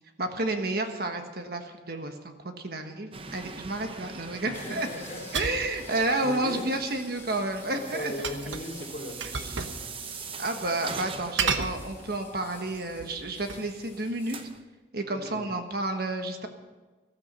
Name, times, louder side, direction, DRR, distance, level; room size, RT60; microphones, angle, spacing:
voice 1, 0.2-4.9 5.3-8.3 9.6-9.7 10.4-14.4 14.9-16.5, right 2 dB, 55° right, 5 dB, 1.4 m, -31 dB
sound 1, 3.1-14.6, right 4 dB, 30° right, 0.8 m, -43 dB
voice 2, 4.4-5.6 6.2-6.7 7.7-10.0 15.1-15.4, left 1 dB, 35° left, -1 dB, 3.0 m, -39 dB
sound 2, 4.5-14.5, left 4 dB, 15° left, 2.8 m, -51 dB
sound 3, 5.3-5.7 8.2-8.7 9.2-9.8 10.1-10.2 11.4-12.3 12.9-13.7, right 5 dB, 80° right, 1.1 m, -31 dB
14.5 x 13.5 x 5.5 m, 1.3 s
head